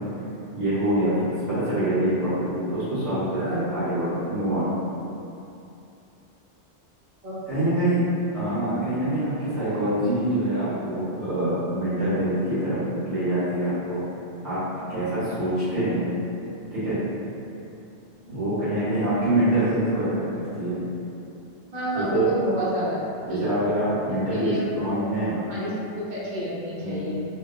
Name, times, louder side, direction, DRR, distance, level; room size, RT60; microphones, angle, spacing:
voice 1, 0.5-4.7 7.5-8.0 8.3-14.0 14.4-14.6 14.9-16.1 16.7-17.0 18.3-20.8 21.9-22.3 23.2-25.4 26.8-27.3, right 1 dB, 85° right, -13 dB, 1.6 m, -25 dB
voice 2, 7.2-7.7 21.7-23.0 23.3-23.6 24.3-25.2 25.5-27.1, equal, 50° right, -8 dB, 0.7 m, -30 dB
3.0 x 2.3 x 2.3 m, 2.7 s
omnidirectional pair, 1.2 m